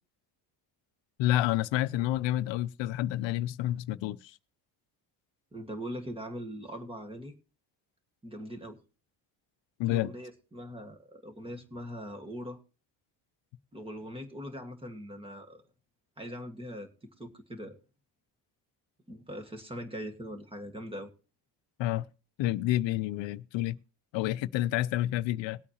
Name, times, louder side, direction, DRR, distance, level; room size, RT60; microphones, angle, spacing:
voice 1, 1.2-4.4 9.8-10.1 21.8-22.1 22.4-23.8 24.1-25.6, left 14 dB, 90° left, 0.7 m, -29 dB
voice 2, 5.5-7.3 8.2-8.8 9.9-12.6 13.7-15.6 16.2-17.8 19.1-21.1, equal, 10° right, 1.7 m, -41 dB
19.5 x 8.4 x 2.8 m
cardioid pair, 140°, 43 cm